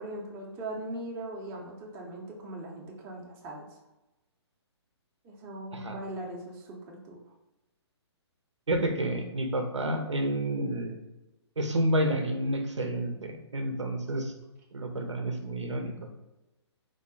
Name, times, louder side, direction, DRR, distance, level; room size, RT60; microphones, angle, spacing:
voice 1, 0.0-3.7 5.2-7.2, right 1 dB, 20° right, -1 dB, 0.6 m, -40 dB
voice 2, 8.7-11.0 11.6-14.3 14.7-15.9, right 1 dB, 90° right, 4 dB, 0.7 m, -29 dB
3.7 x 2.1 x 3.7 m, 0.99 s
figure-of-eight pair, 135°, 15 cm